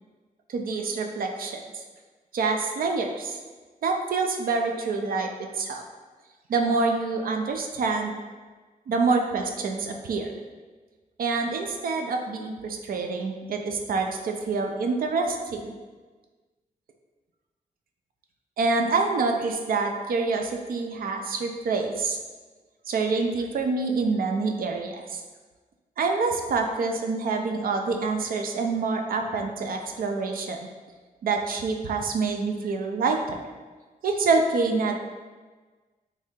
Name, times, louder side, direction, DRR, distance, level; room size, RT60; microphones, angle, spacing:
voice 1, 0.5-1.8 2.3-3.4 3.8-5.8 6.5-8.2 8.9-10.4 11.2-15.7 18.6-22.2 22.9-25.2 26.0-30.6 31.2-33.4 34.0-35.0, right 4 dB, 80° right, 3 dB, 0.4 m, -26 dB
3.2 x 2.7 x 3.6 m, 1.4 s
wide cardioid pair, 170°, 15 cm